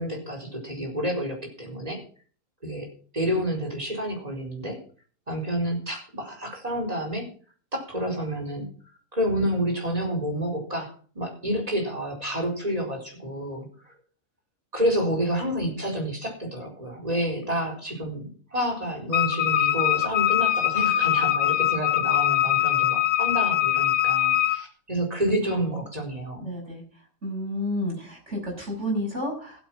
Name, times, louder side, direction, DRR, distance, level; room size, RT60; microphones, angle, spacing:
voice 1, 0.0-2.0 2.6-2.9 3.1-4.8 5.3-7.3 7.7-8.7 9.1-13.9 14.7-26.5, equal, 25° right, 2 dB, 4.6 m, -29 dB
Wind instrument woodwind instrument, 19.1-24.6, left 12 dB, 90° left, 1.5 m, -22 dB
voice 2, 26.4-26.8 27.2-29.6, left 1 dB, 50° right, 1 dB, 6.6 m, -30 dB
15.0 x 9.0 x 6.1 m, 0.42 s
omnidirectional pair, 1.5 m